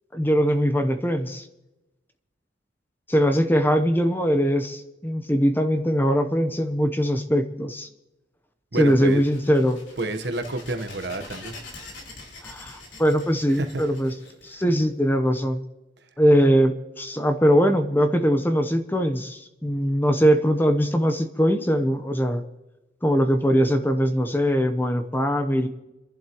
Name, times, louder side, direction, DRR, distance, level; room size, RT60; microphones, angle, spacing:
voice 1, 0.1-1.5 3.1-7.9 8.8-9.8 12.4-14.1 14.4-15.6 16.2-22.4 23.0-25.7, equal, 10° left, 7 dB, 0.8 m, -21 dB
voice 2, 8.7-9.2 10.0-11.6 13.5-13.8, right 2 dB, 60° right, 8 dB, 1.1 m, -29 dB
sound 1, 8.8-15.3, left 2 dB, 75° left, 3.8 m, -44 dB
29.5 x 11.0 x 3.0 m, 1.0 s
head